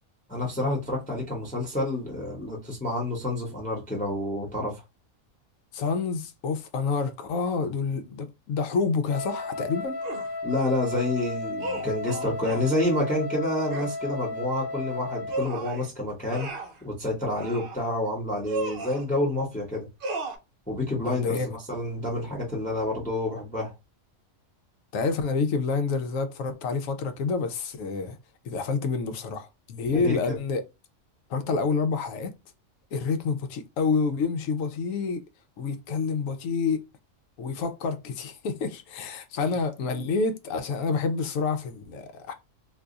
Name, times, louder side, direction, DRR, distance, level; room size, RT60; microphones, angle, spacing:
voice 1, 0.3-4.8 10.4-16.5 16.8-19.9 20.7-23.7 29.8-30.4, left 1 dB, 5° left, 0.8 m, -28 dB
voice 2, 5.7-10.0 21.0-21.5 24.9-28.2 28.4-30.6 31.3-32.3 32.9-35.2 35.6-36.8 37.4-42.3, left 4 dB, 80° left, 1.0 m, -28 dB
Wind instrument woodwind instrument, 9.1-15.5, left 3 dB, 45° left, 0.8 m, -34 dB
sound 1, 10.0-10.3 11.6-12.7 13.7-13.9 15.3-15.8 16.3-16.8 17.4-17.8 18.4-19.0 20.0-20.4, right 2 dB, 55° right, 0.7 m, -34 dB
2.7 x 2.3 x 3.8 m
omnidirectional pair, 1.4 m